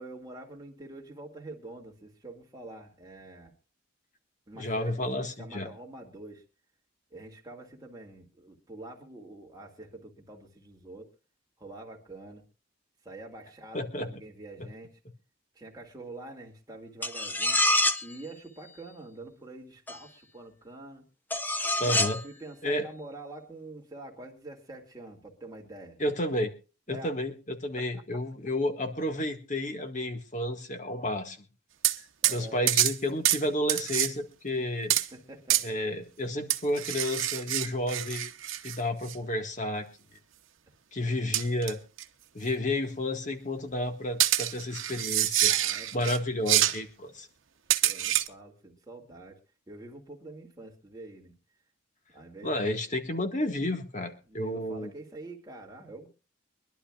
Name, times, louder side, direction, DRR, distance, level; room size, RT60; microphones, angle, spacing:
voice 1, 0.0-3.6 4.5-6.4 7.1-11.1 11.6-12.5 13.0-15.0 15.5-17.6 18.0-21.0 21.8-26.0 26.9-27.1 27.8-27.9 28.1-28.2 32.2-32.6 35.1-35.8 45.5-46.5 47.8-49.4 49.7-51.3 52.1-52.8 54.3-56.1, right 2 dB, 20° right, 0 dB, 2.5 m, -46 dB
voice 2, 4.5-5.7 13.7-14.1 14.6-14.7 21.8-22.2 22.6-22.9 26.0-26.5 26.9-31.4 32.3-34.9 35.6-38.3 38.6-39.9 40.9-41.8 42.3-45.5 45.9-47.3 52.4-54.9, left 1 dB, 40° left, 5 dB, 1.8 m, -31 dB
sound 1, 17.0-18.1 19.9-20.0 21.3-22.2, left 1 dB, 10° left, 0.8 m, -26 dB
sound 2, 31.8-32.0 32.2-32.4 32.7-33.0 33.2-33.4 33.7-34.1 34.9-35.1 35.5-35.7 36.5-38.8 39.1-39.2 41.3-41.7 42.0-42.1 44.2-46.2 46.5-46.8 47.7-48.3, right 13 dB, 80° right, 0.9 m, -26 dB
24.0 x 11.5 x 2.5 m, 0.33 s
head